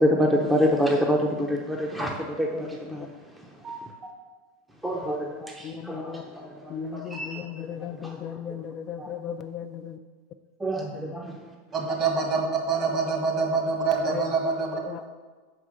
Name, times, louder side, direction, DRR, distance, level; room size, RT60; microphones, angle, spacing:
voice 1, 0.0-3.1 4.8-7.3 8.0-8.1 9.0-9.1 10.6-11.3, equal, 5° right, 0 dB, 0.7 m, -26 dB
voice 2, 2.5-3.1 5.6-6.2 6.7-10.0 10.9-11.1 14.1-14.3 14.9-15.1, left 8 dB, 35° left, 8 dB, 0.4 m, -36 dB
voice 3, 3.6-4.1 11.7-14.8, right 4 dB, 40° right, 1 dB, 1.7 m, -26 dB
5.4 x 4.8 x 6.3 m, 1.4 s
hypercardioid pair, 115°, 0 cm